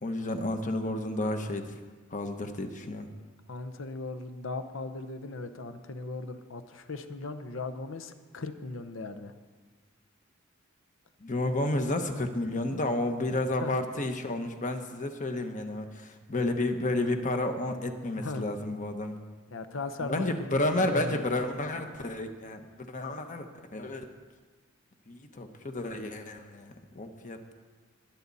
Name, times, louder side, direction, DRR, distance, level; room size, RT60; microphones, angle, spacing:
voice 1, 0.0-1.7 2.1-3.1 11.2-19.2 20.0-23.5 23.7-24.1 25.1-27.5, left 1 dB, 40° left, 6 dB, 1.1 m, -31 dB
voice 2, 3.5-9.3 13.6-13.8 18.2-18.4 19.5-21.2, left 3 dB, 65° left, 9 dB, 0.9 m, -38 dB
22.0 x 8.5 x 4.1 m, 1.4 s
head